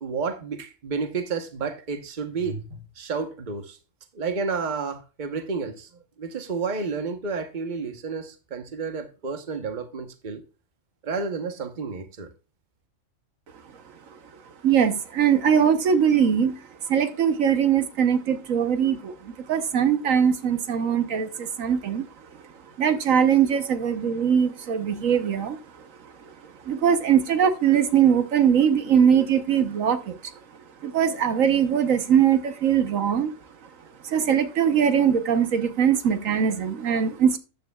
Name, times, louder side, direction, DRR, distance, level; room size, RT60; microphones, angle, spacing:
voice 1, 0.0-3.8 4.1-5.9 6.2-10.4 11.0-12.3, right 5 dB, 40° right, 1.1 m, -31 dB
voice 2, 14.6-22.1 22.4-22.5 22.8-30.3 30.8-33.3 33.6-33.7 34.0-37.4, right 8 dB, 80° right, 1.4 m, -22 dB
13.5 x 9.7 x 2.3 m
omnidirectional pair, 1.3 m